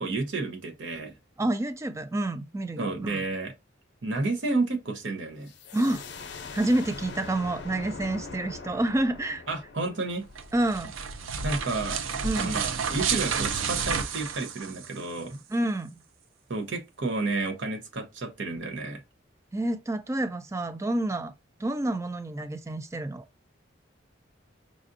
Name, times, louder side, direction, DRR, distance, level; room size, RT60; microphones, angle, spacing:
voice 1, 0.0-1.1 2.8-3.5 4.0-5.5 9.5-10.2 11.4-12.0 12.4-15.4 16.5-19.0, right 3 dB, 70° right, 0.9 m, -31 dB
voice 2, 1.4-3.2 5.7-6.0 6.5-9.4 10.5-10.9 12.2-12.6 15.5-16.0 19.5-21.3 21.6-23.2, right 1 dB, 15° right, 0.3 m, -28 dB
sound 1, 5.5-11.0, left 4 dB, 60° left, 0.6 m, -42 dB
sound 2, 10.2-15.2, right 6 dB, 85° right, 0.5 m, -31 dB
4.9 x 2.6 x 2.6 m
head